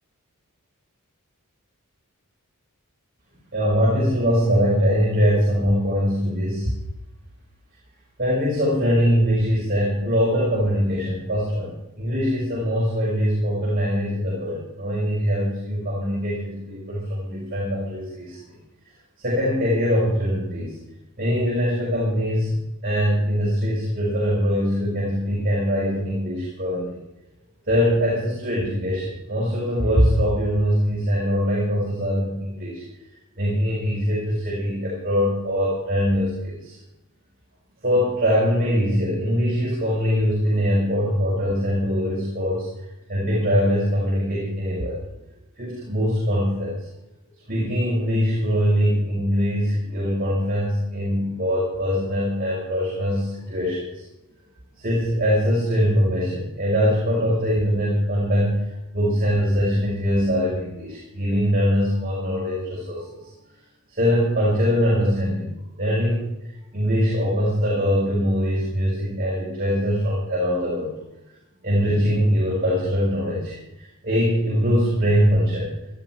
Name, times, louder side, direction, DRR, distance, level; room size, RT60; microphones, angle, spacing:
voice 1, 3.5-6.7 8.2-18.4 19.2-20.8 21.2-27.0 27.7-32.8 33.4-36.8 37.8-42.7 43.1-45.0 45.6-46.8 47.5-53.8 54.8-58.6 58.9-63.2 64.0-65.5 65.8-66.2 66.7-70.9 71.6-75.7, equal, 40° right, -6 dB, 5.8 m, -22 dB
18.5 x 12.5 x 4.6 m, 0.92 s
head